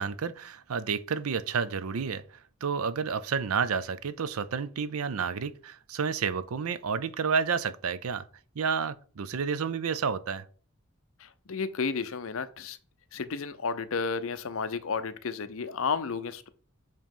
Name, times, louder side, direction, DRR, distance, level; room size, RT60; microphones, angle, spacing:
voice 1, 0.0-2.2 2.6-8.3 8.6-10.4, right 6 dB, 85° right, 0.5 m, -30 dB
voice 2, 11.2-12.8 13.1-16.5, left 5 dB, 70° left, 0.6 m, -32 dB
7.3 x 3.0 x 5.3 m
head